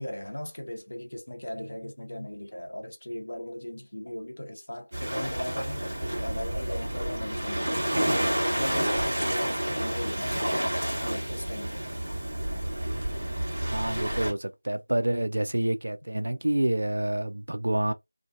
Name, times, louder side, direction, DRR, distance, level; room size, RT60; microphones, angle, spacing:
voice 1, 0.0-7.7 8.2-10.6 11.0-11.9, left 1 dB, 60° left, 0.7 m, -37 dB
Waves surf, 4.9-14.3, right 1 dB, 25° right, 1.2 m, -29 dB
voice 2, 13.4-17.9, right 1 dB, 55° right, 0.4 m, -28 dB
2.5 x 2.2 x 2.5 m
figure-of-eight pair, 175°, 0 cm